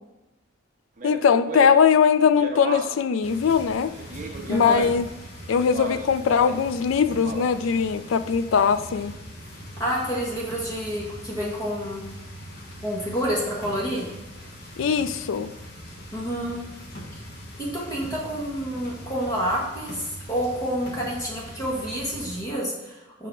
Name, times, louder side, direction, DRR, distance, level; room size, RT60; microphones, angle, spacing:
voice 1, 1.0-3.9 4.5-5.1 5.5-9.1 14.8-15.5, left 6 dB, 70° left, 12 dB, 0.4 m, -21 dB
Speech, 1.0-3.1 3.9-5.1 5.6-6.7 7.1-7.7, right 3 dB, 40° right, 0.6 m, -35 dB
sound 1, 3.2-22.4, equal, 50° left, 1.4 m, -41 dB
voice 2, 4.5-4.8 9.8-12.0 12.8-14.1 16.1-16.6 17.6-23.3, equal, 20° left, -5 dB, 1.8 m, -28 dB
6.7 x 5.0 x 3.7 m, 1.0 s
head